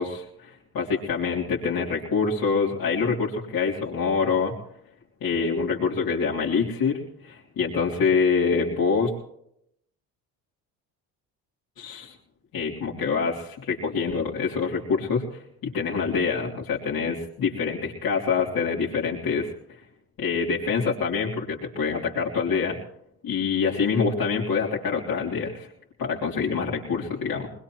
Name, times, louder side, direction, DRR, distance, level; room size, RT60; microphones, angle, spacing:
voice 1, 0.0-4.5 5.2-9.1 11.8-12.1 12.5-19.5 20.2-22.8 23.2-25.7 26.0-27.5, left 5 dB, 60° left, -6 dB, 3.3 m, -26 dB
22.0 x 21.0 x 3.1 m, 0.73 s
supercardioid pair, 80°, 39 cm